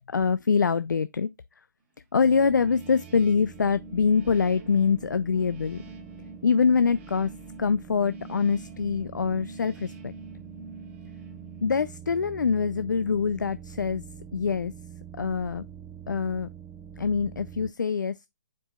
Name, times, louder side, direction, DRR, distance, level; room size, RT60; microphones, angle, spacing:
voice 1, 0.1-1.3 2.1-5.8 6.4-7.3 7.6-10.1 11.6-14.0 14.3-14.7 15.2-15.6 16.1-16.5 17.0-18.2, left 5 dB, 90° left, 0.4 m, -24 dB
sound 1, 2.2-17.7, right 8 dB, 10° right, 0.4 m, -45 dB
sound 2, 2.2-12.1, right 3 dB, 40° right, 1.2 m, -46 dB
9.8 x 4.7 x 2.4 m
hypercardioid pair, 145°, 10 cm